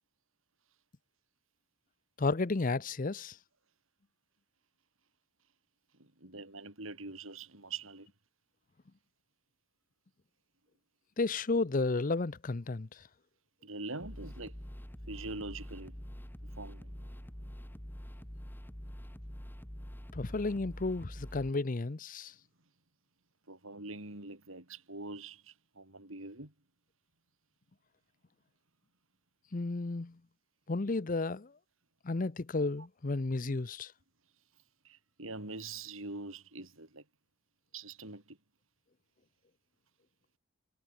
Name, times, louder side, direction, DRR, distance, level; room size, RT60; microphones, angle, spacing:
voice 1, 2.2-3.4 11.2-13.0 20.1-22.3 29.5-30.2 30.7-31.5 32.0-33.9, left 3 dB, 40° left, 0.6 m, -32 dB
voice 2, 5.9-8.1 13.6-14.6 15.1-16.0 16.6-17.0 23.5-26.5 33.4-33.6 34.8-37.0 37.7-38.4, right 3 dB, 75° right, 4.8 m, -44 dB
sound 1, 14.0-21.5, equal, 10° left, 2.4 m, -46 dB
head